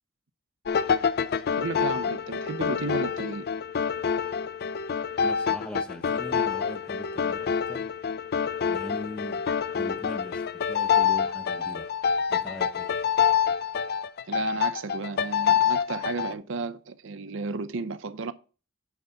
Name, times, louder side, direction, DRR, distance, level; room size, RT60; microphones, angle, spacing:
sound 1, 0.7-16.3, left 7 dB, 50° left, 0.4 m, -27 dB
voice 1, 1.6-3.5 14.3-18.3, right 4 dB, 60° right, 0.5 m, -33 dB
voice 2, 5.2-7.9 8.7-9.4 9.7-12.0 12.3-12.9, equal, 5° left, 0.7 m, -40 dB
9.2 x 3.9 x 5.5 m
head